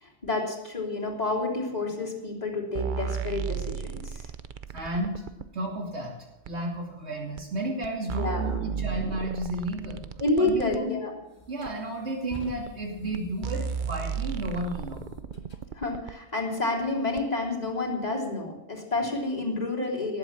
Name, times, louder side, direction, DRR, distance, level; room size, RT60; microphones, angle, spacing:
voice 1, 0.0-4.3 8.2-8.6 10.2-11.1 15.8-20.2, left 2 dB, 35° left, -2 dB, 3.4 m, -29 dB
sound 1, 2.8-5.5 6.5-6.6 7.4-7.5 7.8-10.8 11.7-11.8 12.7-12.8 13.1-13.2 13.4-16.2 17.2-17.3, right 7 dB, 50° right, 0.7 m, -34 dB
voice 2, 4.7-6.1 6.5-10.0 10.4-10.9 11.5-15.0, right 1 dB, 70° right, -1 dB, 3.2 m, -32 dB
sound 2, 10.6-10.7 11.3-15.6, left 2 dB, 65° left, 2.3 m, -47 dB
19.0 x 8.4 x 7.4 m, 0.95 s
omnidirectional pair, 1.2 m